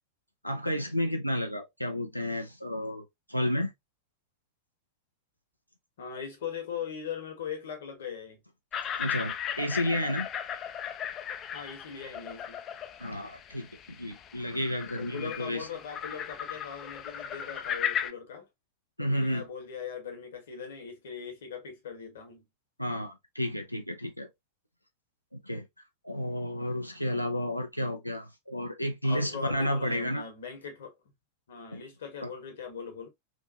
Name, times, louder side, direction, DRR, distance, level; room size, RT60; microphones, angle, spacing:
voice 1, 0.4-3.7 9.0-10.3 13.0-13.7 14.0-15.7 19.0-19.4 22.8-24.3 25.3-25.7 26.0-30.2 31.7-31.8 32.2-32.3, equal, 90° left, 0.4 m, -31 dB
voice 2, 6.0-8.4 11.5-12.6 15.0-18.5 19.0-22.4 29.0-31.1 31.5-33.1, left 7 dB, 60° left, 1.1 m, -40 dB
sound 1, 8.7-18.1, left 9 dB, 30° left, 0.4 m, -36 dB
3.0 x 2.6 x 2.5 m
figure-of-eight pair, 90°, 0 cm